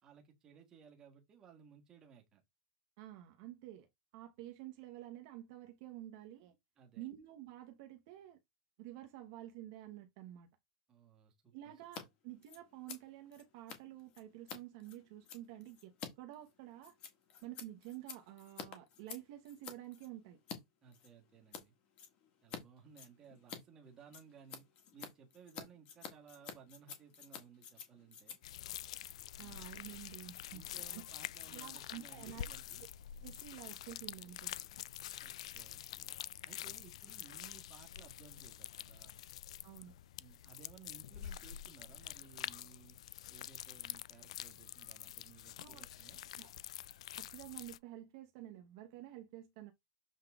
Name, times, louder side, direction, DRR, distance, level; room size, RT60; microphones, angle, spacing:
voice 1, 0.0-2.4 6.8-7.0 10.9-12.1 20.8-21.7 22.4-24.7 24.9-28.4 29.4-29.6 30.5-32.8 35.1-36.2 36.5-39.2 40.2-43.0 43.3-46.2, right 7 dB, 15° right, 1.5 m, -60 dB
voice 2, 3.0-3.9 4.1-6.5 7.0-8.4 8.8-10.5 11.5-16.9 17.4-20.4 29.4-31.0 31.5-32.5 33.2-34.7 39.6-39.9 45.6-45.8 46.3-46.5 47.2-49.7, right 14 dB, 40° right, 1.0 m, -50 dB
Scissors, 11.8-12.0 12.3-20.6 20.9-21.6 22.0-22.6 22.9-29.7, left 7 dB, 30° left, 1.6 m, -50 dB
sound 1, 28.4-47.8, left 12 dB, 65° left, 0.4 m, -47 dB
7.3 x 3.9 x 3.6 m
supercardioid pair, 175°, 3 cm